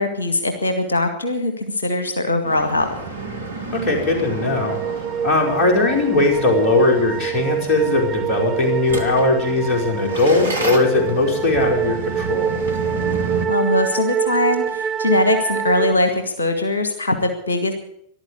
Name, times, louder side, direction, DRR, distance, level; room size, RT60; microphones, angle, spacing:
voice 1, 0.0-2.9 13.5-17.7, left 2 dB, 75° left, 7 dB, 1.9 m, -21 dB
sound 1, 2.4-13.5, right 3 dB, 75° right, 2.1 m, -31 dB
voice 2, 3.7-4.8 5.2-12.6, left 2 dB, 35° left, 1 dB, 4.9 m, -19 dB
sound 2, 4.2-15.9, right 8 dB, 20° right, 0.7 m, -26 dB
14.0 x 12.0 x 8.3 m, 0.72 s
figure-of-eight pair, 90°, 0 cm